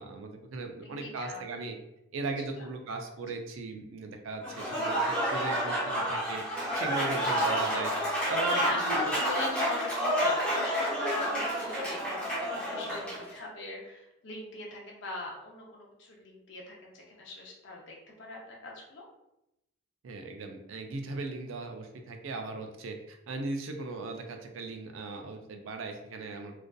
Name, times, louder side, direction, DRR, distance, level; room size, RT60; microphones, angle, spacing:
voice 1, 0.0-1.8 2.1-7.9 8.3-9.2 20.0-26.5, right 3 dB, 70° right, 5 dB, 0.4 m, -38 dB
voice 2, 0.8-1.4 2.6-2.7 8.6-19.1, left 1 dB, 60° left, -2 dB, 0.6 m, -41 dB
Applause / Crowd, 4.4-13.3, equal, 5° left, 0.6 m, -29 dB
2.5 x 2.3 x 2.2 m, 0.88 s
head